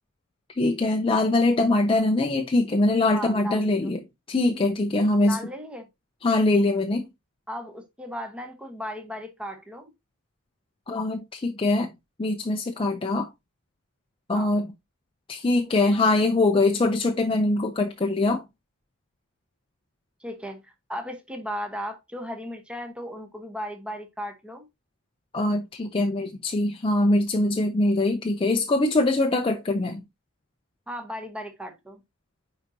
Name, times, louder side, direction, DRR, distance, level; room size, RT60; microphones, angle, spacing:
voice 1, 0.6-4.0 4.3-5.4 6.2-7.1 10.9-11.9 12.2-13.3 14.3-14.7 15.3-18.4 25.3-30.0, left 2 dB, 25° left, 0.5 m, -23 dB
voice 2, 3.1-3.9 5.2-5.9 7.5-9.9 14.3-14.5 20.2-24.7 30.9-32.0, equal, 5° right, 1.0 m, -36 dB
9.7 x 4.0 x 2.7 m
head